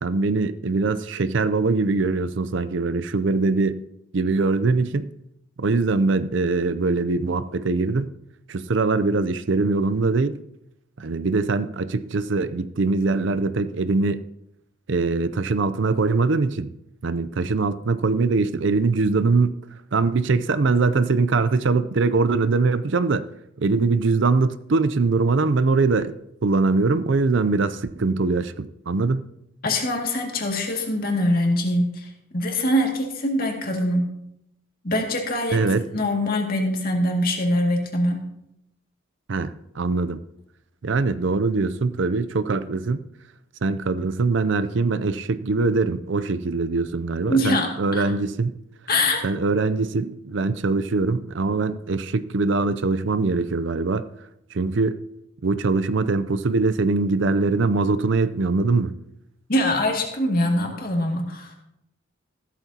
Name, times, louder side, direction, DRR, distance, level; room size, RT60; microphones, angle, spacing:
voice 1, 0.0-3.8 4.1-5.1 5.6-8.1 8.5-10.4 11.0-14.2 14.9-16.7 17.0-19.5 19.9-23.2 23.6-26.1 26.4-29.2 35.5-35.9 39.3-40.2 40.8-43.0 43.6-48.5 49.2-54.1 54.5-55.0 55.4-58.9, right 3 dB, 60° right, 0.5 m, -22 dB
voice 2, 29.6-34.1 34.8-35.7 35.9-38.2 47.3-48.1 48.9-49.2 59.5-61.5, left 1 dB, 45° left, 2.2 m, -23 dB
14.5 x 12.5 x 2.8 m
head